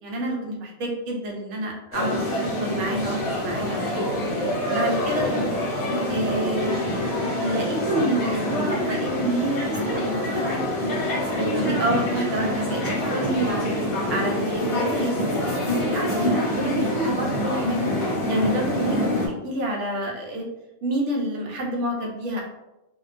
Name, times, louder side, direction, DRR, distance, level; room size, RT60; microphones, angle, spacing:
voice 1, 0.0-2.1 2.6-4.1 4.7-5.4 6.1-6.9 7.4-10.6 11.2-13.7 14.1-17.9 18.3-20.5 20.8-22.4, right 1 dB, 65° right, -1 dB, 0.9 m, -28 dB
sound 1, 1.9-19.3, left 1 dB, 80° left, 1.1 m, -26 dB
2.4 x 2.2 x 2.3 m, 0.97 s
omnidirectional pair, 1.5 m